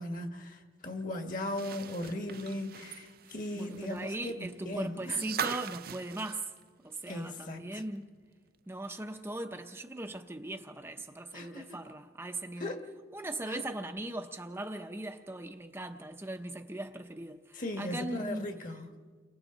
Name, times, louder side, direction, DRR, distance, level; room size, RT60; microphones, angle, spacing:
voice 1, 0.0-5.3 7.1-7.8 11.3-11.8 12.6-12.9 13.5-13.6 17.5-18.8, left 1 dB, 45° left, 1.9 m, -38 dB
sound 1, 1.4-7.4 7.8-7.9 9.3-9.4, right 8 dB, 50° right, 0.5 m, -41 dB
voice 2, 3.5-6.5 6.8-8.1 8.7-12.7 13.1-18.5, right 2 dB, 15° right, 0.7 m, -39 dB
29.5 x 23.5 x 4.0 m
head